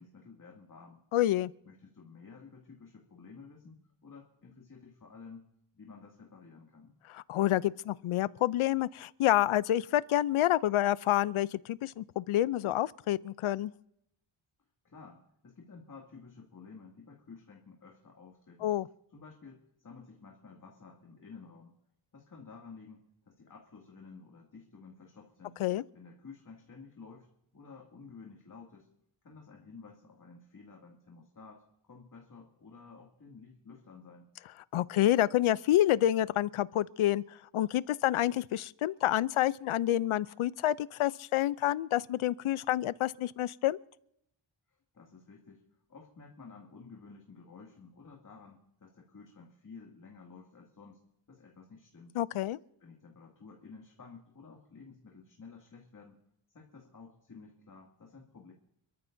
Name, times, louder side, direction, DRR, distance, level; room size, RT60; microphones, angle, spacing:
voice 1, 0.0-1.0 1.6-5.5 5.7-6.9 14.8-18.7 19.1-21.7 22.1-25.6 25.9-27.3 27.5-28.9 29.2-34.3 44.7-45.6 45.9-51.0 51.3-52.2 52.8-56.2 56.5-58.5, left 4 dB, 40° left, 2.4 m, -52 dB
voice 2, 1.1-1.5 7.1-13.7 18.6-18.9 25.6-25.8 34.7-37.2 37.5-43.8 52.2-52.6, left 13 dB, 80° left, 0.6 m, -28 dB
29.0 x 13.5 x 2.7 m
wide cardioid pair, 125°, 49 cm